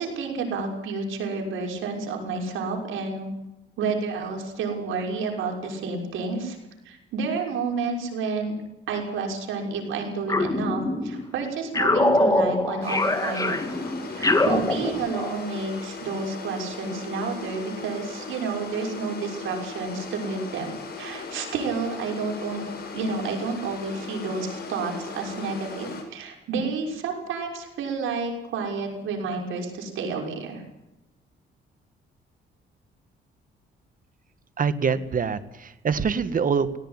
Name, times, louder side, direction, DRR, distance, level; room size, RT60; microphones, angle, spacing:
voice 1, 0.0-3.3 3.8-6.6 6.8-8.6 8.9-13.6 14.1-22.6 22.9-30.6, right 4 dB, 80° right, 1 dB, 5.9 m, -30 dB
sound 1, 10.3-11.3 11.7-15.4, left 2 dB, 15° left, 2.5 m, -24 dB
sound 2, 12.8-26.0, left 4 dB, 50° left, 6.9 m, -38 dB
voice 2, 34.6-36.8, right 6 dB, 45° right, 12 dB, 1.7 m, -25 dB
18.0 x 18.0 x 9.8 m, 0.94 s
cardioid pair, 90°, 20 cm